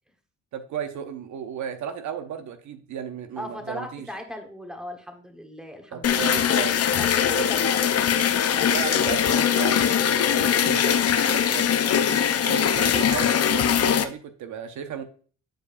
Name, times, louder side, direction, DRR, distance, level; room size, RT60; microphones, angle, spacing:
voice 1, 0.5-4.1 5.9-6.8 7.4-7.5 8.6-12.1 12.4-15.0, right 8 dB, 70° right, 8 dB, 0.8 m, -35 dB
voice 2, 3.4-6.3 7.0-8.1, left 1 dB, ahead, 4 dB, 1.4 m, -37 dB
sound 1, 6.0-14.0, left 8 dB, 55° left, 0.7 m, -21 dB
8.9 x 4.8 x 2.6 m, 0.42 s
cardioid pair, 90°, 30 cm